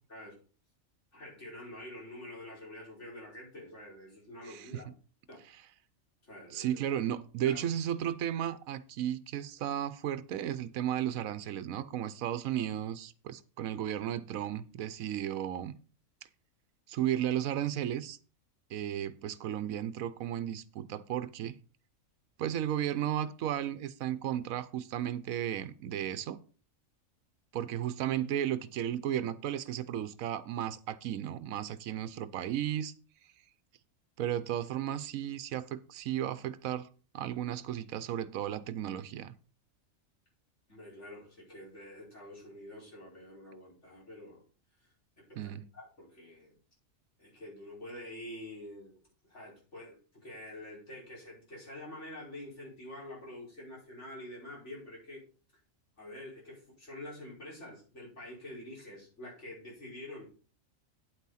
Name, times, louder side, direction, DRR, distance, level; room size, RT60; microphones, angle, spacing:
voice 1, 1.1-4.9 5.3-5.4 6.2-6.8 7.4-7.6 40.7-44.4 45.3-46.5 47.2-49.0 49.3-55.2 56.0-60.3, left 1 dB, 60° left, 5.5 m, -47 dB
voice 2, 4.5-4.9 6.5-15.7 16.9-18.2 18.7-21.5 22.4-26.4 27.5-32.9 34.2-36.9 37.1-39.3 45.4-45.7, right 11 dB, 85° right, 1.1 m, -34 dB
9.1 x 8.3 x 4.2 m
omnidirectional pair, 1.4 m